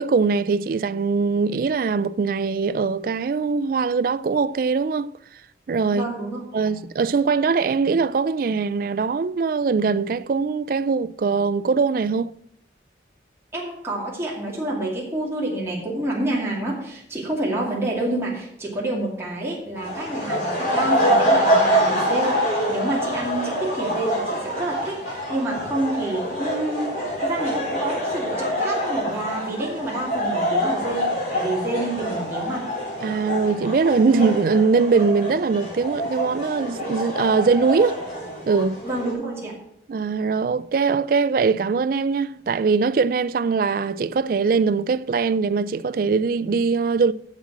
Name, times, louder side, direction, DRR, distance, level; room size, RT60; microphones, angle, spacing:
voice 1, 0.0-5.1 5.7-6.1 6.5-12.3 33.0-38.0 38.5-38.8 39.9-47.1, right 5 dB, 50° right, 0.3 m, -21 dB
voice 2, 5.9-6.7 13.5-32.6 38.8-39.6, right 1 dB, 15° right, 2.4 m, -28 dB
sound 1, 19.7-39.1, equal, 45° left, 4.0 m, -25 dB
7.5 x 7.3 x 7.4 m
head